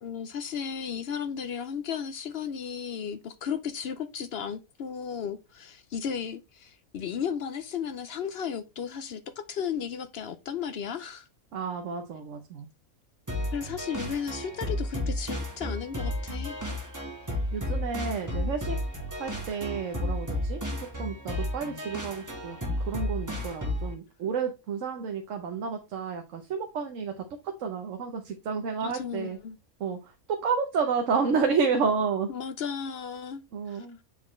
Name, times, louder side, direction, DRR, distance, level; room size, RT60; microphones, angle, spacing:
voice 1, 0.0-11.3 13.5-16.6 28.8-29.6 32.3-34.0, left 7 dB, 60° left, 0.6 m, -34 dB
voice 2, 11.5-12.7 17.5-18.8 19.1-27.2 27.6-29.4 29.8-32.3 33.5-34.0, right 5 dB, 65° right, 1.1 m, -30 dB
sound 1, 13.3-23.9, left 1 dB, 15° right, 1.3 m, -32 dB
7.2 x 4.2 x 3.1 m
omnidirectional pair, 1.5 m